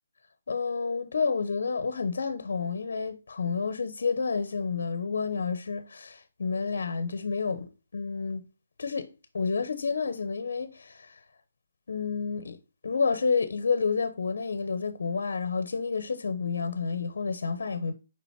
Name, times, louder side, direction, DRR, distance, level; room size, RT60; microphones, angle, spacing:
voice 1, 0.5-8.5 8.8-9.1 9.3-11.2 11.9-12.6 12.8-17.9, left 5 dB, 70° left, 1.0 m, -30 dB
7.0 x 5.1 x 4.4 m
hypercardioid pair, 155°, 0 cm